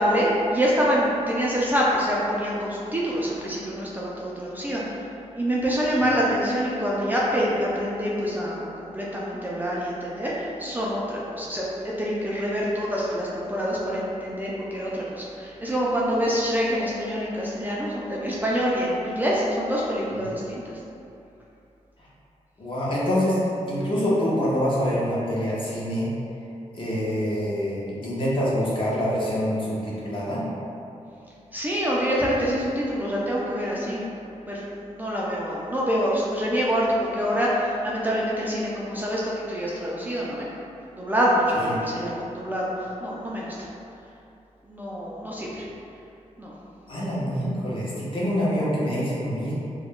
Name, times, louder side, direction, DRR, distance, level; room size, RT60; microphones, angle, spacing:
voice 1, 0.0-5.1 5.4-20.7 31.5-34.1 34.5-40.5 40.9-43.7 44.7-45.7 46.4-46.5, equal, 15° right, -6 dB, 0.4 m, -26 dB
voice 2, 22.6-23.4 23.7-26.1 26.7-30.4 41.6-41.7 46.9-49.5, equal, 40° left, -7 dB, 0.8 m, -25 dB
2.3 x 2.1 x 3.5 m, 2.7 s
cardioid pair, 95°, 13 cm